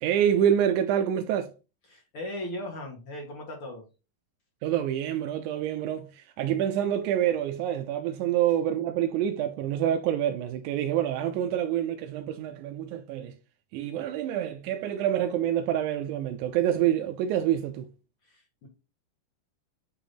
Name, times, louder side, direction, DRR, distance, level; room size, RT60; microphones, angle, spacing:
voice 1, 0.0-1.5 4.6-13.4 13.7-17.9, right 10 dB, 80° right, 1.8 m, -27 dB
voice 2, 1.9-3.8 18.2-18.7, left 1 dB, 50° left, 2.0 m, -38 dB
8.4 x 3.0 x 3.9 m
omnidirectional pair, 3.9 m